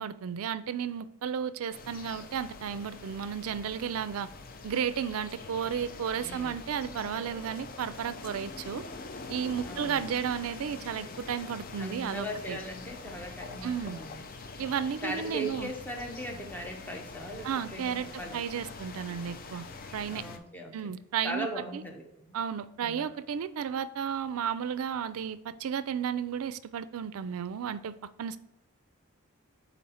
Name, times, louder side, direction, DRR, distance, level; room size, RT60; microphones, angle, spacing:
voice 1, 0.0-4.3 4.6-8.8 9.3-12.6 13.6-14.0 14.6-15.7 17.4-19.6 19.9-20.2 20.7-21.8 22.3-28.4, right 8 dB, 75° right, 14 dB, 0.4 m, -33 dB
sound 1, 1.7-20.4, left 3 dB, 40° left, 0.5 m, -44 dB
voice 2, 6.2-6.6 9.6-10.0 11.8-14.2 15.0-18.4 20.1-20.9 21.2-22.4 22.8-23.1, equal, 10° left, 1 dB, 0.8 m, -39 dB
4.2 x 4.1 x 5.5 m, 0.90 s
head